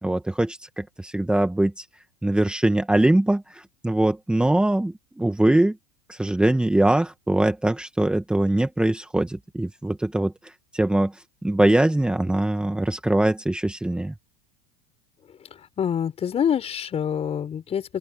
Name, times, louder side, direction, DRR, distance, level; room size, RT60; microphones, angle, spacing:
voice 1, 0.0-1.9 2.2-5.8 6.1-14.1, right 1 dB, 5° right, 1.4 m, -22 dB
voice 2, 15.8-18.0, left 8 dB, 30° left, 5.2 m, -26 dB
open air
hypercardioid pair, 105°, 21 cm